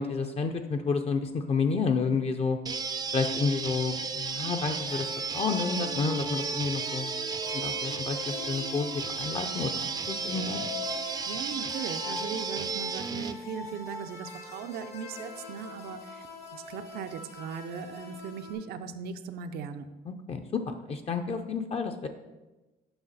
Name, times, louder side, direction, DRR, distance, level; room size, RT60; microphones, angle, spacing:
voice 1, 0.0-2.6 3.1-7.1 7.5-10.6 20.1-22.1, left 4 dB, 35° left, 6 dB, 0.5 m, -30 dB
sound 1, 2.7-13.3, right 5 dB, 25° right, 0.5 m, -34 dB
sound 2, 4.8-18.5, left 2 dB, 80° left, 2.0 m, -42 dB
voice 2, 11.2-19.9, right 7 dB, 70° right, 9 dB, 0.6 m, -39 dB
7.9 x 5.7 x 4.1 m, 1.1 s
cardioid pair, 110°, 17 cm